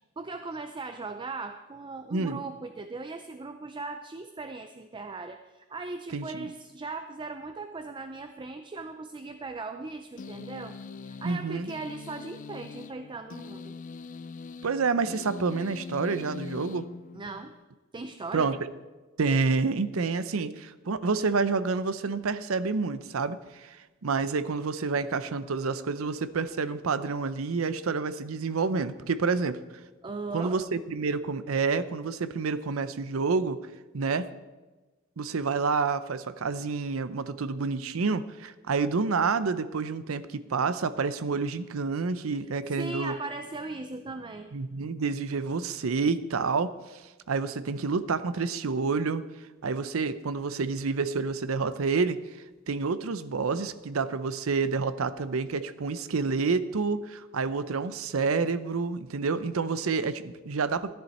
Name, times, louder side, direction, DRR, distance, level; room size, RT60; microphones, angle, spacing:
voice 1, 0.0-10.8 11.0-13.8 17.1-17.6 17.9-18.5 30.0-30.6 42.7-45.0, right 3 dB, 25° right, 8 dB, 0.5 m, -38 dB
voice 2, 2.1-2.4 6.1-6.5 11.2-11.7 14.6-16.9 18.3-18.6 19.2-29.6 30.3-33.6 33.9-34.3 35.2-43.2 44.5-47.0 47.3-49.2 49.6-52.2 52.7-60.9, right 4 dB, 75° right, 13 dB, 0.6 m, -28 dB
sound 1, 10.2-17.6, left 4 dB, 40° left, 0.4 m, -42 dB
13.5 x 10.5 x 4.3 m, 1.2 s
head